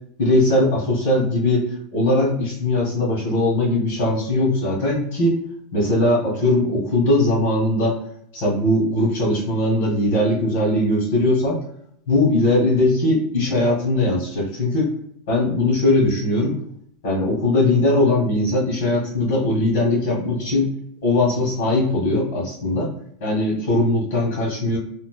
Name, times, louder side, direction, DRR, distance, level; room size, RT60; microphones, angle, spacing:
voice 1, 0.2-5.4 5.7-8.0 8.3-11.6 12.1-14.9 15.3-16.6 17.0-20.7 21.0-22.9 23.2-24.8, left 1 dB, 85° left, -6 dB, 1.1 m, -20 dB
2.5 x 2.1 x 2.3 m, 0.67 s
supercardioid pair, 165°, 0 cm